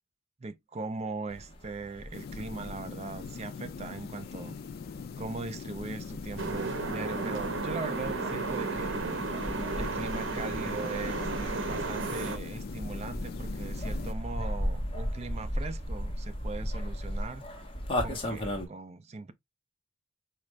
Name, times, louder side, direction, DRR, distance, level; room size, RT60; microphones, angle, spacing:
voice 1, 0.4-4.6 5.2-9.0 9.7-17.4 18.0-19.3, right 3 dB, 35° right, 0.4 m, -40 dB
sound 1, 1.3-18.7, equal, 30° left, 1.0 m, -37 dB
sound 2, 2.1-14.1, left 5 dB, 55° left, 0.3 m, -42 dB
sound 3, 6.4-12.4, right 3 dB, 85° right, 0.7 m, -33 dB
4.3 x 2.5 x 3.1 m
head